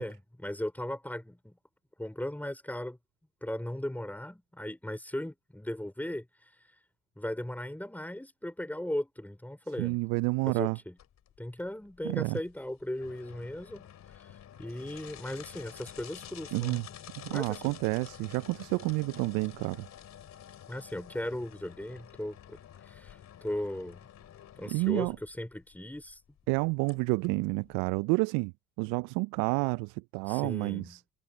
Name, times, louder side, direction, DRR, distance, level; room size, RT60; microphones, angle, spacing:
voice 1, 0.0-1.6 2.0-3.0 3.4-6.5 7.2-10.0 10.5-11.0 11.4-13.9 14.2-16.8 17.3-17.8 20.7-22.6 22.9-24.0 24.6-26.2 30.3-31.0, left 1 dB, 5° left, 4.8 m, -37 dB
voice 2, 9.8-10.8 12.0-12.4 16.5-16.8 17.2-19.9 24.7-25.2 26.5-28.5 28.8-31.0, right 28 dB, 65° right, 0.6 m, -29 dB
sound 1, 11.0-28.0, left 10 dB, 50° left, 2.9 m, -50 dB
hypercardioid pair, 60°, 36 cm